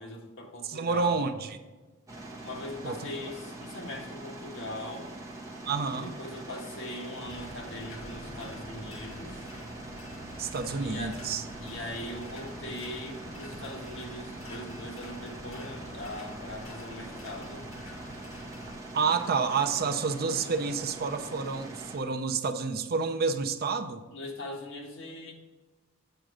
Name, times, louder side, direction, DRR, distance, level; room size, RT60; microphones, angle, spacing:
voice 1, 0.0-1.3 2.4-5.1 5.9-9.5 10.8-11.2 11.6-17.6 24.1-25.3, left 1 dB, 65° left, 0 dB, 1.5 m, -41 dB
voice 2, 0.7-1.5 2.8-3.0 5.7-6.1 10.4-11.4 18.9-24.1, right 5 dB, 45° right, 8 dB, 0.5 m, -29 dB
sound 1, 2.1-22.0, right 2 dB, 15° right, 1.4 m, -43 dB
sound 2, 7.2-18.8, left 1 dB, 90° left, 1.6 m, -46 dB
7.9 x 5.1 x 4.9 m, 1.2 s
head